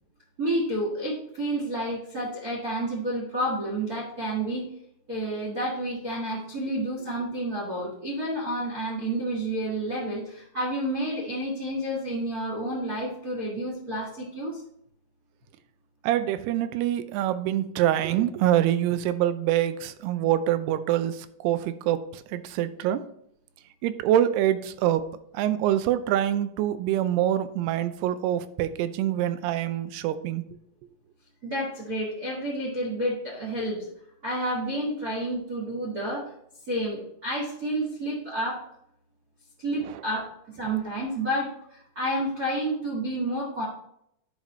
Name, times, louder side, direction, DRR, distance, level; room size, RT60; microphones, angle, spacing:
voice 1, 0.4-4.7 5.1-14.6 31.4-33.9 34.2-36.3 36.7-38.6 39.6-43.7, right 1 dB, 55° right, -4 dB, 1.0 m, -30 dB
voice 2, 16.0-23.0 23.8-25.0 25.3-30.4 39.8-40.0, right 12 dB, 90° right, 12 dB, 2.6 m, -25 dB
10.5 x 5.1 x 3.1 m, 0.72 s
omnidirectional pair, 4.6 m